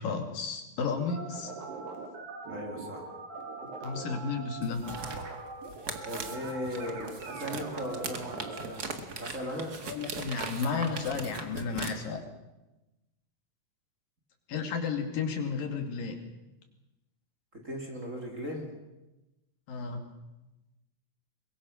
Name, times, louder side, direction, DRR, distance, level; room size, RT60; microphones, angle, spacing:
voice 1, 0.0-1.5 3.8-4.9 9.9-12.2 14.5-16.2 19.7-20.1, left 5 dB, 75° left, 5 dB, 4.0 m, -33 dB
sound 1, 1.1-8.7, right 4 dB, 75° right, 4.7 m, -41 dB
voice 2, 2.5-3.1 6.0-8.9 9.2-9.8 17.5-18.7, equal, 25° right, 2 dB, 2.9 m, -38 dB
sound 2, 4.6-11.9, right 4 dB, 40° right, 1.5 m, -40 dB
23.0 x 22.0 x 6.4 m, 1.0 s
omnidirectional pair, 4.0 m